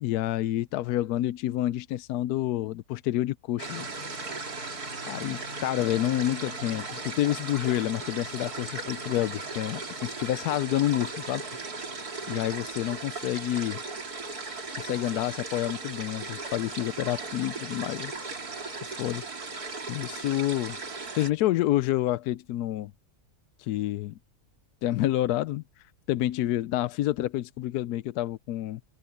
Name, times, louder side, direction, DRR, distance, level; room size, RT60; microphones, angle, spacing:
voice 1, 0.0-3.9 5.1-11.4 12.3-13.8 14.8-18.1 18.8-19.2 19.9-20.8 21.1-22.9 23.6-24.2 24.8-25.6 26.1-28.8, left 14 dB, 85° left, 1.1 m, -28 dB
sound 1, 3.6-21.3, right 3 dB, 80° right, 3.6 m, -37 dB
omnidirectional pair, 1.6 m